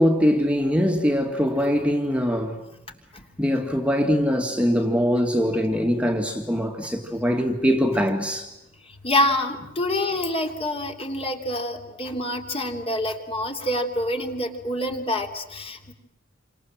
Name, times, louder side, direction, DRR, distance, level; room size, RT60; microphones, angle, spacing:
voice 1, 0.0-2.6 3.4-8.5, equal, 5° right, 2.0 m, -22 dB
voice 2, 9.0-15.9, left 1 dB, 30° left, 3.2 m, -26 dB
29.5 x 26.0 x 7.6 m
head